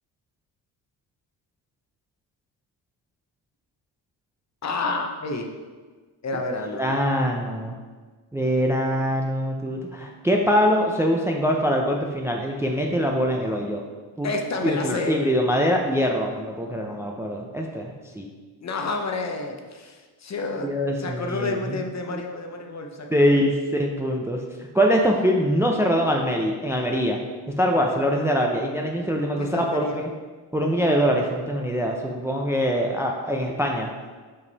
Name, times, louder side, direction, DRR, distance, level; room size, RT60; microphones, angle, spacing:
voice 1, 4.6-5.5 6.2-6.8 14.2-15.2 18.6-23.4 29.4-30.0, left 3 dB, 40° left, 3 dB, 0.8 m, -30 dB
voice 2, 6.5-7.8 8.3-13.8 14.2-14.3 14.6-18.3 20.6-21.8 22.1-22.2 23.1-24.4 24.7-27.2 27.6-30.0 30.5-33.9, equal, 5° right, 1 dB, 0.5 m, -23 dB
5.5 x 5.2 x 4.0 m, 1.4 s
cardioid pair, 95°, 44 cm